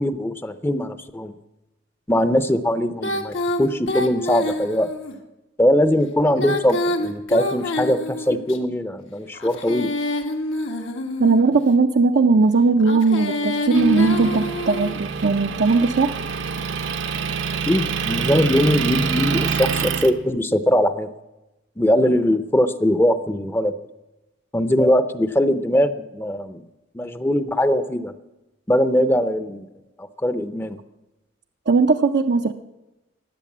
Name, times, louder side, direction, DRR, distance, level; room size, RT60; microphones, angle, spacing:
voice 1, 0.0-1.3 2.1-4.9 5.6-9.9 17.7-21.1 21.8-23.8 24.5-26.6 26.9-28.1 28.7-29.7 30.0-30.8, equal, 10° left, 11 dB, 0.6 m, -21 dB
Female singing, 3.0-5.1 6.3-8.6 9.4-11.5 12.8-15.0, left 1 dB, 85° left, 1.5 m, -27 dB
voice 2, 11.2-16.2 31.7-32.5, right 4 dB, 60° right, 4 dB, 0.5 m, -18 dB
Motor vehicle (road) / Engine, 13.7-20.1, right 6 dB, 75° right, 1.0 m, -26 dB
15.5 x 10.0 x 7.3 m, 1.0 s
head